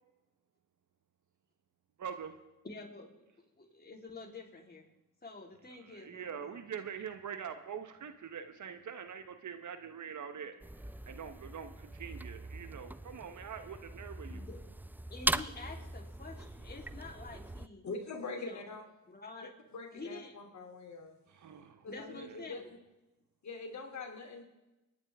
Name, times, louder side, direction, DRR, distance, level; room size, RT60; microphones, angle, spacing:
voice 1, 2.0-2.4 5.9-10.6 11.1-14.4 21.3-21.8 22.2-22.3, right 7 dB, 50° right, 9 dB, 1.3 m, -44 dB
voice 2, 2.6-3.3 3.6-4.9 5.2-6.7 14.3-14.6 15.1-17.9 18.3-18.7 19.1-19.5 19.9-20.3 21.9-22.7, left 3 dB, 25° left, 0 dB, 3.8 m, -48 dB
sound 1, 10.6-17.7, right 1 dB, 5° right, 0.4 m, -40 dB
voice 3, 17.8-18.8 19.7-21.2 21.8-22.8 23.4-24.4, left 3 dB, 45° left, 2 dB, 3.4 m, -43 dB
28.5 x 10.5 x 3.7 m, 0.99 s
supercardioid pair, 60°, 38 cm